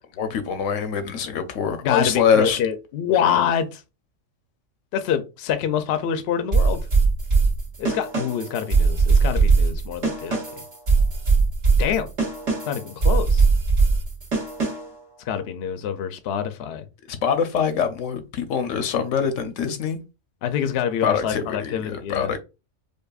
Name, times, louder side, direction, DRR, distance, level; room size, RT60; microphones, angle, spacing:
voice 1, 0.2-2.6 17.1-20.0 21.0-22.4, left 7 dB, 80° left, 1.0 m, -24 dB
voice 2, 1.8-3.8 4.9-6.8 7.8-10.4 11.8-12.1 12.6-13.5 15.3-16.9 20.4-22.3, left 8 dB, 65° left, 0.7 m, -26 dB
sound 1, 6.5-15.0, right 4 dB, 65° right, 1.6 m, -20 dB
5.2 x 2.2 x 2.3 m
omnidirectional pair, 1.3 m